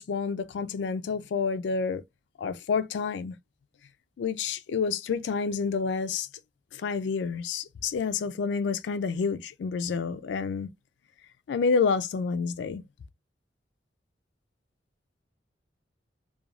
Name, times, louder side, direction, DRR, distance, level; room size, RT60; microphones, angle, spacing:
voice 1, 0.0-2.0 2.4-3.4 4.2-6.3 6.7-10.7 11.5-12.8, left 5 dB, 70° left, 0.3 m, -29 dB
2.4 x 2.2 x 3.0 m
head